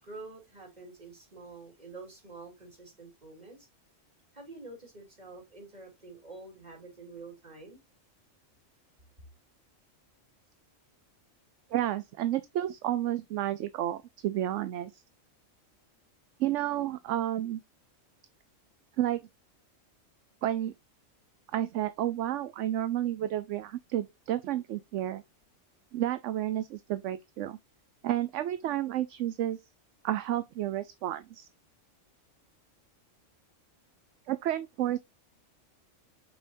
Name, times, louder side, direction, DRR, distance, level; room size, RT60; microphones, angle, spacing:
voice 1, 0.0-3.7 4.3-7.8, right 3 dB, 30° right, 3.5 m, -47 dB
voice 2, 11.7-15.0 16.4-17.6 19.0-19.2 20.4-20.7 21.5-25.2 25.9-27.6 28.0-29.6 30.0-31.5 34.3-35.0, right 12 dB, 75° right, 0.9 m, -31 dB
6.7 x 5.5 x 2.6 m
omnidirectional pair, 1.3 m